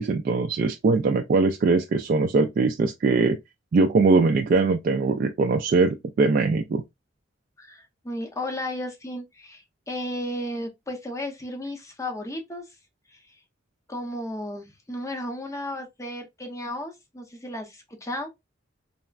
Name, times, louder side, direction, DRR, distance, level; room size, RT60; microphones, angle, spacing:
voice 1, 0.0-3.4 3.7-6.8, right 3 dB, 50° right, 0.3 m, -21 dB
voice 2, 7.6-12.6 13.1-13.2 13.9-18.3, left 1 dB, 15° left, 0.6 m, -34 dB
3.3 x 2.1 x 2.3 m
head